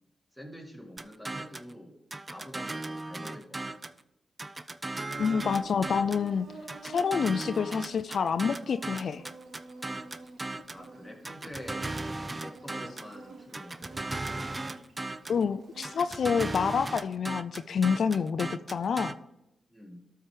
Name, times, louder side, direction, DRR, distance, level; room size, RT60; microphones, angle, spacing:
voice 1, 0.3-1.9 2.3-3.6 10.7-11.9 12.4-14.1 19.7-20.1, equal, 5° left, 0 dB, 2.2 m, -46 dB
sound 1, 1.0-1.7 2.1-4.0 4.4-6.3 6.7-10.8 11.2-13.1 13.5-15.4 15.8-19.1, right 2 dB, 30° right, 0.5 m, -37 dB
Insect, 5.1-16.8, right 3 dB, 70° right, 1.2 m, -49 dB
voice 2, 5.2-6.5 6.8-9.2 15.3-19.1, left 6 dB, 70° left, 12 dB, 0.3 m, -28 dB
12.5 x 4.5 x 5.0 m, 0.86 s
supercardioid pair, 45°, 0 cm